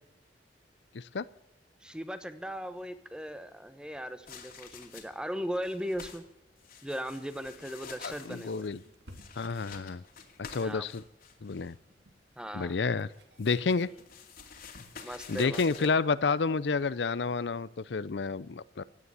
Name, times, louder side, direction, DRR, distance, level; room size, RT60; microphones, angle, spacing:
voice 1, 0.9-1.3 8.0-8.8 9.4-10.0 10.5-11.0 11.4-11.7 12.5-13.1 13.4-13.9 15.3-18.8, left 4 dB, 75° left, 17 dB, 0.6 m, -30 dB
voice 2, 1.8-6.2 6.8-8.7 10.6-10.9 12.4-12.7 13.9-14.0 15.0-15.9, equal, 5° right, 11 dB, 1.1 m, -38 dB
sound 1, 4.3-5.3 5.5-6.2 6.6-11.7 13.1-15.9, left 6 dB, 55° left, 2.4 m, -49 dB
sound 2, 8.8-14.9, equal, 75° right, 2.5 m, -59 dB
17.0 x 10.0 x 8.2 m, 0.88 s
head